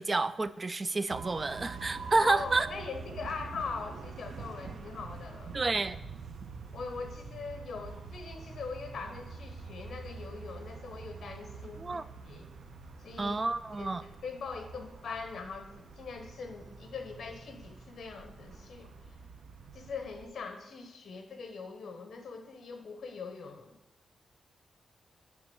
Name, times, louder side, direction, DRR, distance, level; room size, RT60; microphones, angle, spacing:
voice 1, 0.0-2.7 5.5-6.0 11.8-12.0 13.2-14.0, right 3 dB, 30° right, 15 dB, 0.4 m, -29 dB
sound 1, 1.1-20.3, right 4 dB, 65° right, 0.9 m, -46 dB
voice 2, 2.2-5.5 6.7-12.5 13.0-13.4 13.8-14.0 14.2-18.9 19.7-23.7, left 4 dB, 60° left, 6 dB, 1.2 m, -42 dB
9.6 x 3.6 x 7.0 m, 0.94 s
cardioid pair, 105°, 0 cm